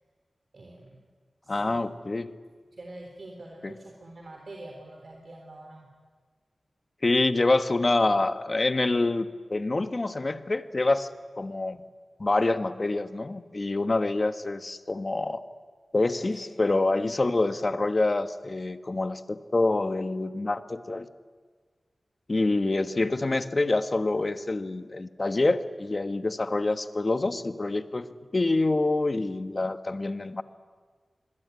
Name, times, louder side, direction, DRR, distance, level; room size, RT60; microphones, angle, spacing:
voice 1, 0.5-1.0 1.4-1.9 2.7-5.9 16.2-16.5 17.2-17.3, right 2 dB, 60° right, 2 dB, 3.7 m, -45 dB
voice 2, 1.5-2.3 3.6-3.7 7.0-11.1 11.4-11.8 12.2-15.4 15.9-21.1 22.3-28.1 28.3-30.4, left 2 dB, 40° left, 10 dB, 1.3 m, -26 dB
27.0 x 21.5 x 9.6 m, 1.5 s
wide cardioid pair, 75°, 0 cm